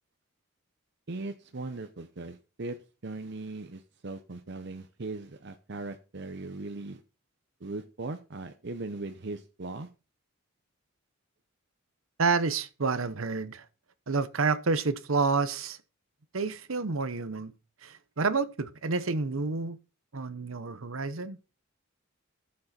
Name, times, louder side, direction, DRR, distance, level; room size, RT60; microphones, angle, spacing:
voice 1, 1.1-2.8 3.0-7.0 7.6-9.9, right 2 dB, 55° right, 0.8 m, -39 dB
voice 2, 12.2-13.7 14.1-15.8 16.3-17.5 17.8-19.8 20.1-21.4, right 4 dB, 85° right, 1.0 m, -29 dB
14.5 x 7.6 x 4.3 m
head